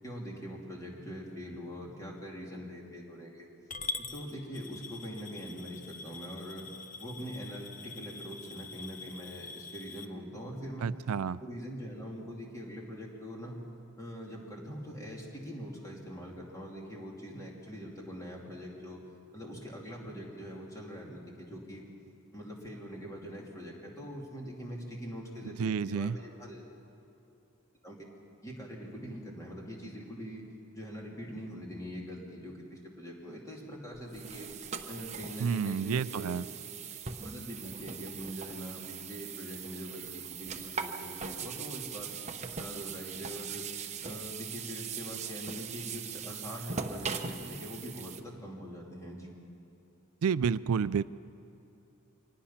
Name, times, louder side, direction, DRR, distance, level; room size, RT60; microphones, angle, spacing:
voice 1, 0.0-3.5 4.0-6.7 7.0-10.9 11.4-13.6 14.0-19.0 19.3-21.8 22.3-26.7 27.8-28.0 28.4-30.4 30.7-34.5 34.9-36.4 37.2-42.1 42.5-43.6 44.0-49.3, equal, 15° left, -2 dB, 3.0 m, -43 dB
Coin (dropping) / Glass, 3.7-10.1, left 4 dB, 40° left, 0.8 m, -44 dB
voice 2, 10.8-11.4 25.6-26.2 35.4-36.4 50.2-51.0, right 6 dB, 80° right, 16 dB, 0.4 m, -30 dB
sound 1, 33.9-48.2, right 6 dB, 30° right, 0.9 m, -40 dB
24.5 x 19.0 x 5.8 m, 2.7 s
head